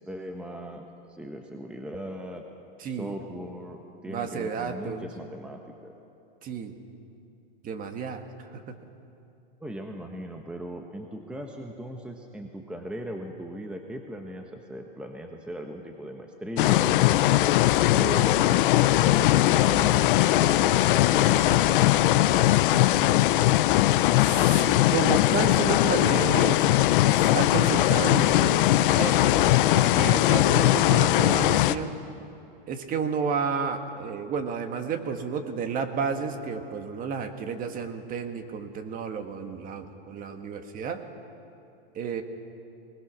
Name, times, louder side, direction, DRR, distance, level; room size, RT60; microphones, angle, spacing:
voice 1, 0.0-2.4 2.9-5.9 9.6-17.0 17.3-18.5 18.8-23.2, right 1 dB, 5° right, 3 dB, 1.1 m, -38 dB
voice 2, 2.8-3.2 4.1-5.1 6.4-6.7 7.6-8.2 8.5-8.6 24.2-32.0 32.7-41.0 42.0-42.2, right 5 dB, 30° right, 7 dB, 1.6 m, -31 dB
sound 1, 16.6-31.8, left 15 dB, 60° left, 0.7 m, -20 dB
20.5 x 20.0 x 6.2 m, 2.6 s
hypercardioid pair, 130°, 29 cm